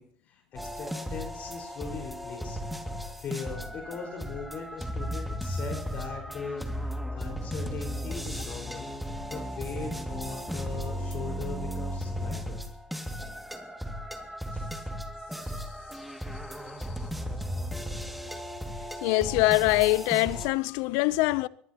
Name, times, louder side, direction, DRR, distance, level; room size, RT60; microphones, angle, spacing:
voice 1, 0.0-2.6 3.2-8.9 9.3-12.6 14.5-14.7, left 5 dB, 45° left, 5.0 m, -40 dB
sound 1, 0.6-20.5, equal, ahead, 2.3 m, -35 dB
voice 2, 19.0-21.5, left 19 dB, 70° left, 0.6 m, -24 dB
23.0 x 18.5 x 3.0 m
supercardioid pair, 90°, 4 cm